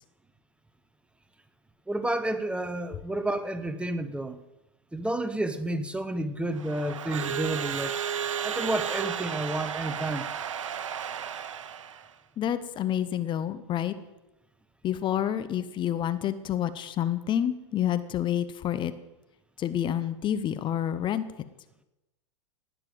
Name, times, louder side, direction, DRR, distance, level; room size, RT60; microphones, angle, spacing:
voice 1, 1.9-4.4 4.9-8.0 8.4-10.3, right 1 dB, 5° right, 12 dB, 0.9 m, -30 dB
Crowd / Alarm, 6.5-12.1, right 8 dB, 80° right, 0.8 m, -33 dB
voice 2, 12.4-13.9 14.8-18.9 19.6-21.2, left 10 dB, 30° left, 12 dB, 0.8 m, -28 dB
18.0 x 6.9 x 7.8 m, 1.0 s
hypercardioid pair, 100°, 16 cm